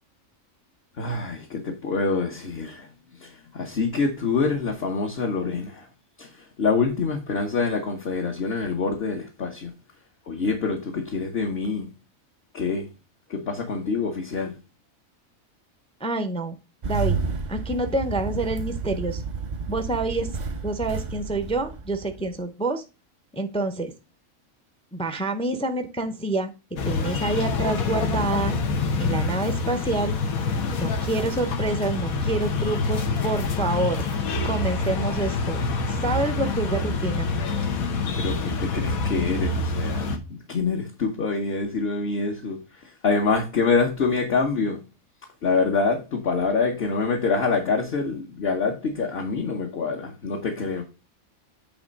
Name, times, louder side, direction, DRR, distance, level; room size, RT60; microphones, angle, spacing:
voice 1, 1.0-2.9 3.2-5.9 6.2-9.7 10.3-11.9 12.5-12.9 13.3-14.6 38.2-44.8 45.4-50.8, left 4 dB, 50° left, 1.2 m, -26 dB
voice 2, 16.0-16.6 16.9-17.2 17.5-19.2 19.7-20.3 20.6-22.8 23.3-23.9 24.9-26.5 26.8-28.6 29.0-30.2 30.8-34.0 34.4-35.6 36.0-37.3, right 2 dB, 10° left, 0.3 m, -27 dB
Engine starting, 16.8-22.4, right 5 dB, 40° right, 0.7 m, -31 dB
sound 1, 26.8-40.2, left 3 dB, 85° left, 1.4 m, -26 dB
8.6 x 3.2 x 5.2 m
omnidirectional pair, 1.4 m